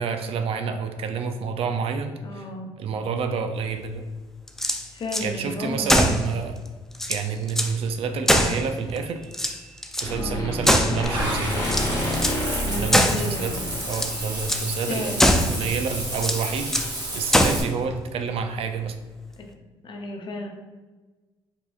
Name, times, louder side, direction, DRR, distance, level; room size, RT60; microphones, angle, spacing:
voice 1, 0.0-2.4 2.8-4.1 5.2-6.6 7.1-9.2 10.0-11.6 12.7-13.5 13.9-16.8 17.1-19.0, right 5 dB, 70° right, 7 dB, 0.4 m, -28 dB
voice 2, 2.2-2.7 4.9-6.1 10.1-10.5 12.6-13.7 14.8-15.4 19.4-19.5 19.8-20.5, left 2 dB, 50° left, 2 dB, 0.7 m, -33 dB
sound 1, 4.5-5.3 5.9-6.3 6.7-6.8 6.9-7.8 8.3-9.0 9.3-10.1 10.6-11.2 11.6-12.4 12.9-13.3 13.8-14.2 14.5-14.7 15.2-15.6 16.2-16.9 17.3-17.7, equal, 5° left, 0.4 m, -22 dB
sound 2, 9.0-9.7 10.0-14.4, left 1 dB, 30° left, 1.1 m, -29 dB
Water / Bathtub (filling or washing), 11.0-17.6, right 1 dB, 40° right, 1.3 m, -31 dB
4.7 x 2.9 x 2.4 m, 1.2 s
cardioid pair, 85°, 10 cm